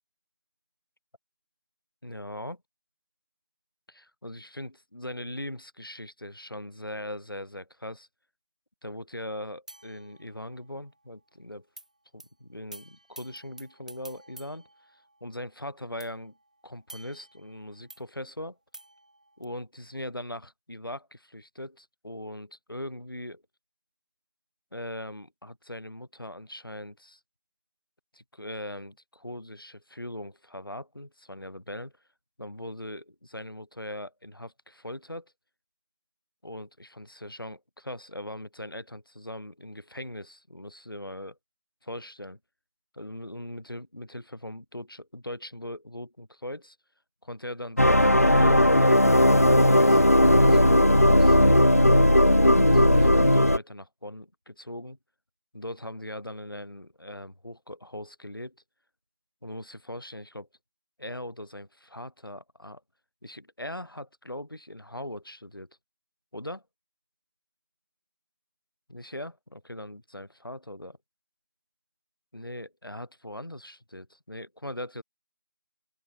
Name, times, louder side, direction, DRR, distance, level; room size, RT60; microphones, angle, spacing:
voice 1, 2.0-2.6 3.9-8.1 8.8-11.7 12.1-14.7 15.2-16.4 16.6-18.6 19.4-23.4 24.7-27.2 28.1-31.9 32.4-35.3 36.4-41.4 41.8-42.4 42.9-46.8 47.2-51.7 52.3-55.0 55.5-58.6 59.4-60.5 61.0-62.8 63.2-65.7 66.3-66.6 68.9-71.0 72.3-75.0, left 1 dB, 85° left, 4.0 m, -40 dB
sound 1, 9.7-10.9 11.8-11.9 12.2-12.3 12.7-15.5 16.0-18.0 18.7-19.4, right 1 dB, 20° right, 5.6 m, -51 dB
sound 2, 47.8-53.6, left 1 dB, 45° left, 0.4 m, -17 dB
open air
figure-of-eight pair, 180°, 11 cm